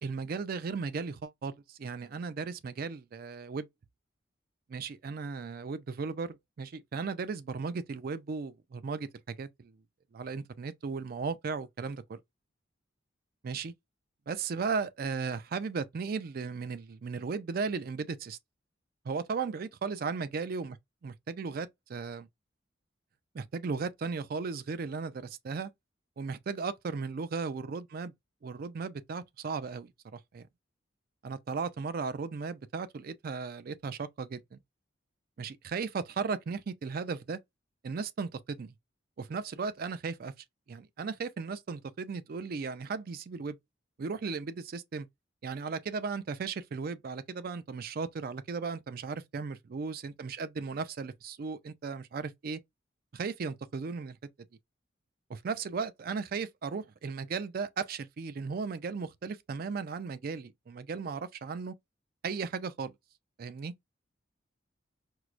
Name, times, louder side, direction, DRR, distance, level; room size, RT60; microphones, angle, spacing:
voice 1, 0.0-3.7 4.7-9.7 10.1-12.2 13.4-13.7 14.3-18.4 19.1-20.8 21.0-22.3 23.3-25.7 26.2-28.1 28.4-30.4 31.2-34.6 35.4-37.4 37.8-38.7 39.2-40.3 40.7-43.6 44.0-45.1 45.4-52.6 53.1-54.2 55.3-61.7 62.2-62.9 63.4-63.7, right 5 dB, 50° right, 0.4 m, -36 dB
4.5 x 2.0 x 2.4 m
head